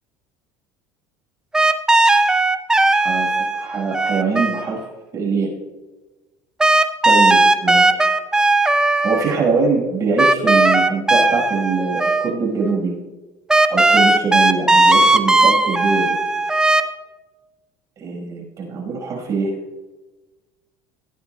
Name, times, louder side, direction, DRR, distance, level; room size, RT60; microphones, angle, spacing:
sound 1, 1.5-4.9 6.6-9.4 10.2-12.3 12.7-12.8 13.5-16.8, right 2 dB, 10° right, 0.6 m, -16 dB
voice 1, 3.6-4.8 5.1-5.5 7.0-8.0 9.0-12.9 13.7-16.2 18.0-19.5, right 4 dB, 40° right, -1 dB, 5.2 m, -22 dB
20.0 x 15.0 x 2.3 m, 1.2 s
cardioid pair, 130°, 9 cm